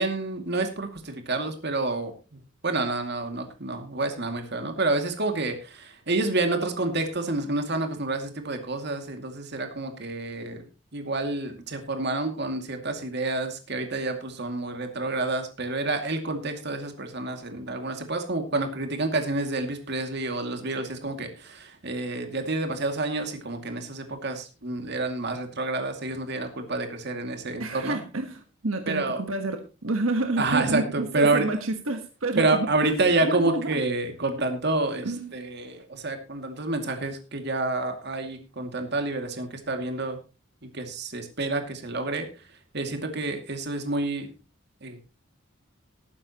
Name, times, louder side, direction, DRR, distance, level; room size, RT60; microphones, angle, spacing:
voice 1, 0.0-2.1 2.6-10.7 10.9-28.0 28.9-29.2 30.4-31.5 32.4-35.1 35.3-40.2 40.7-42.3 42.7-44.3 44.8-45.2, right 2 dB, 55° right, 6 dB, 2.4 m, -28 dB
voice 2, 27.6-33.8 35.0-35.4, right 2 dB, 85° right, 6 dB, 1.4 m, -29 dB
19.0 x 9.7 x 3.0 m, 0.30 s
head